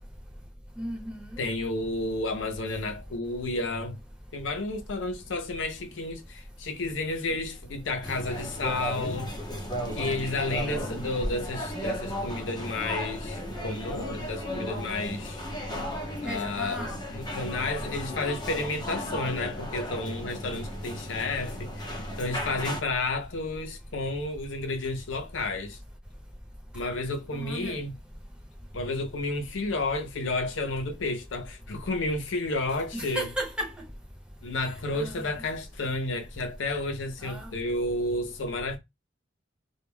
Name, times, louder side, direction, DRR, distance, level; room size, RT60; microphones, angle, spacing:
voice 1, 0.8-1.4 10.7-11.1 16.2-17.0 27.3-27.8 32.9-33.7 34.9-35.2 37.2-37.5, right 1 dB, 5° right, 0.8 m, -35 dB
voice 2, 1.4-4.0 4.3-9.3 9.9-15.5 16.2-16.8 17.1-25.8 26.7-27.9 28.7-33.3 34.4-38.8, left 2 dB, 80° left, 0.6 m, -31 dB
sound 1, 8.0-22.8, equal, 25° left, 0.7 m, -35 dB
2.2 x 2.2 x 3.2 m
head